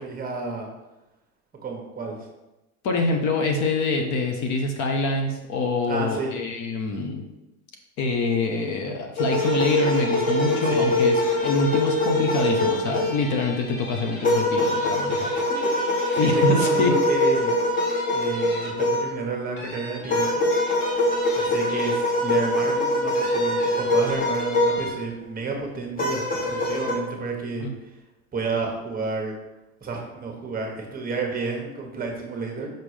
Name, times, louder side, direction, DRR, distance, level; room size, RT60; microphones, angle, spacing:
voice 1, 0.0-0.7 1.6-2.2 5.9-6.3 10.6-10.9 15.3-15.4 15.8-17.5 18.1-20.5 21.3-26.2 26.5-27.7 28.3-29.3 29.8-32.7, right 3 dB, 20° right, 1 dB, 1.3 m, -31 dB
voice 2, 2.8-7.2 8.0-15.3 16.2-17.0 27.6-27.7, left 3 dB, 45° left, 2 dB, 1.0 m, -25 dB
sound 1, 9.2-13.4 14.2-19.2 20.1-24.9 26.0-27.0, left 1 dB, 20° left, 1.1 m, -23 dB
sound 2, 9.4-16.8 17.3-17.4 17.8-19.0 19.6-22.4 23.1-24.9, left 1 dB, 65° left, 1.7 m, -40 dB
5.8 x 3.7 x 4.9 m, 0.99 s
supercardioid pair, 120°, 42 cm